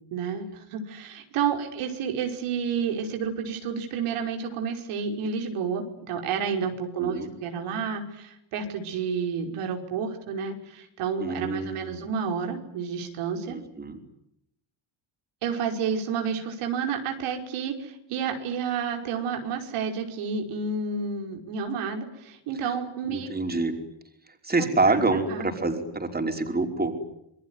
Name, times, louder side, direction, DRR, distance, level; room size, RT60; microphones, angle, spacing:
voice 1, 0.1-13.6 15.4-23.3 24.6-25.5, right 6 dB, 85° right, 3 dB, 5.4 m, -30 dB
voice 2, 7.0-7.3 11.2-12.0 13.5-14.0 23.1-23.8 24.4-27.0, right 3 dB, 20° right, 4 dB, 5.3 m, -26 dB
27.5 x 21.5 x 9.8 m, 0.78 s
cardioid pair, 115°, 50 cm